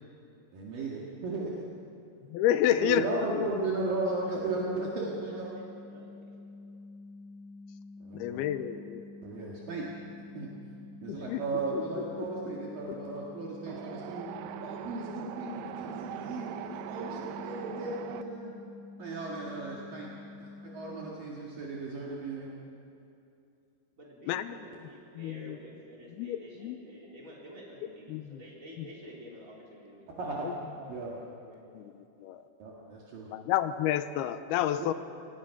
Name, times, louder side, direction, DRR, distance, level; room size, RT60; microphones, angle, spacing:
voice 1, 0.5-1.6 2.8-5.5 8.0-8.4 9.2-9.9 10.3-10.5 11.0-14.3 14.6-18.5 19.0-20.1 20.4-22.5 30.2-30.5 30.9-31.1 32.6-33.3, right 3 dB, 60° right, -4 dB, 3.6 m, -35 dB
voice 2, 2.3-3.5 8.1-9.0 11.1-11.4 11.7-11.8 24.3-24.6 25.2-25.6 26.2-26.8 28.1-28.4 31.8-31.9 32.2-32.4 33.3-34.9, left 11 dB, 80° left, 11 dB, 2.6 m, -29 dB
sound 1, 3.9-21.1, left 3 dB, 65° left, 1.9 m, -48 dB
voice 3, 4.2-4.6 5.5-6.4 24.0-31.6, equal, 20° right, -4 dB, 4.3 m, -51 dB
Wind, 13.7-18.2, right 11 dB, 80° right, 2.1 m, -41 dB
26.5 x 19.5 x 6.0 m, 2.6 s
omnidirectional pair, 4.8 m